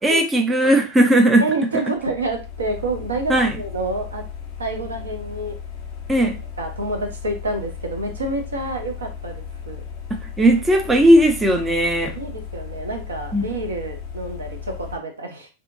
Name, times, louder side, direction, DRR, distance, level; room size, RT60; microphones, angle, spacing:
voice 1, 0.0-1.4 3.3-3.6 6.1-6.4 10.2-12.2 13.3-13.4, right 1 dB, 10° right, 4 dB, 0.4 m, -17 dB
voice 2, 1.4-4.2 4.6-5.5 6.6-9.8 12.0-15.5, right 2 dB, 70° right, 4 dB, 0.6 m, -28 dB
sound 1, 1.9-15.0, left 7 dB, 45° left, 0.6 m, -35 dB
2.6 x 2.1 x 2.5 m, 0.31 s
figure-of-eight pair, 90°, 0 cm